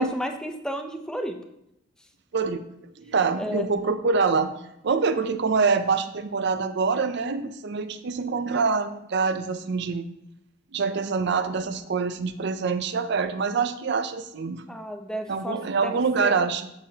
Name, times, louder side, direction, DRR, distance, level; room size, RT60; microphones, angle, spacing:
voice 1, 0.0-1.4 3.4-3.7 14.7-16.5, equal, 5° left, 5 dB, 0.5 m, -33 dB
voice 2, 3.0-4.5 4.8-10.1 10.7-14.6 15.3-16.7, right 4 dB, 60° right, 10 dB, 0.5 m, -25 dB
7.8 x 6.7 x 2.8 m, 0.80 s
head